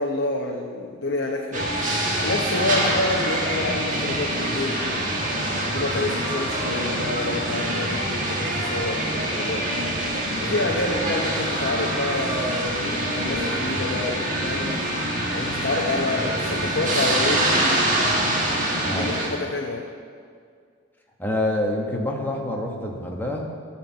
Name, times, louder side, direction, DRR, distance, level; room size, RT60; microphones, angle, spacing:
voice 1, 0.0-1.7 2.2-4.8 5.7-9.9 10.4-14.8 15.3-17.9 18.8-19.9, left 2 dB, 60° left, -1 dB, 0.8 m, -28 dB
sound 1, 1.5-19.3, right 1 dB, 40° right, 1.6 m, -25 dB
voice 2, 18.8-19.2 21.2-23.4, left 1 dB, 10° left, 0 dB, 1.1 m, -26 dB
12.5 x 4.5 x 7.3 m, 2.1 s
head